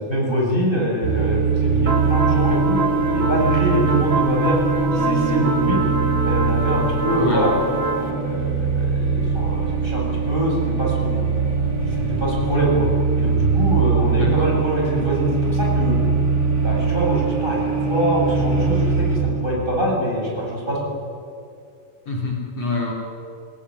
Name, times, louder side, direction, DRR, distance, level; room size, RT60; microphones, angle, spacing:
voice 1, 0.1-2.8 3.1-5.8 6.2-7.5 8.0-11.2 11.8-12.9 13.2-16.0 16.6-20.9, right 1 dB, 15° right, -4 dB, 7.9 m, -24 dB
sound 1, 1.0-19.2, right 4 dB, 35° right, 4.5 m, -22 dB
sound 2, 1.9-8.1, right 3 dB, 50° right, 0.7 m, -26 dB
sound 3, 4.9-10.5, right 5 dB, 70° right, 8.4 m, -36 dB
voice 2, 14.1-14.5 22.1-22.9, left 3 dB, 50° left, -3 dB, 4.7 m, -26 dB
28.0 x 18.0 x 10.0 m, 2.5 s
omnidirectional pair, 3.9 m